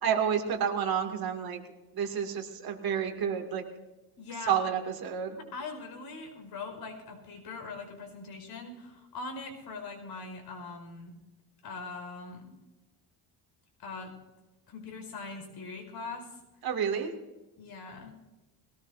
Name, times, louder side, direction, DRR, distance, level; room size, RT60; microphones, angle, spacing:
voice 1, 0.0-1.6 1.9-3.6 4.4-5.4 16.6-17.1, right 8 dB, 50° right, 3 dB, 2.6 m, -30 dB
voice 2, 4.2-4.6 5.4-11.1 11.6-12.5 13.8-14.1 14.7-16.3 17.6-18.1, left 3 dB, 60° left, 3 dB, 5.1 m, -41 dB
22.0 x 18.5 x 2.7 m, 1.1 s
cardioid pair, 135°, 45 cm